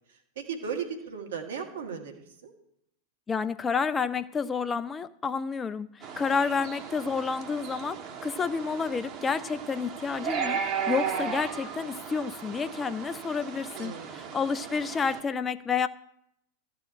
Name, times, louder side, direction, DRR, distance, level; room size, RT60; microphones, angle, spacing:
voice 1, 0.4-2.5 13.7-14.4, right 6 dB, 70° right, 5 dB, 1.8 m, -36 dB
voice 2, 3.3-10.6 10.9-15.9, left 5 dB, 20° left, 12 dB, 0.4 m, -30 dB
sound 1, 6.0-15.2, right 7 dB, 40° right, 1.5 m, -36 dB
13.0 x 4.8 x 8.6 m, 0.77 s
hypercardioid pair, 100°, 0 cm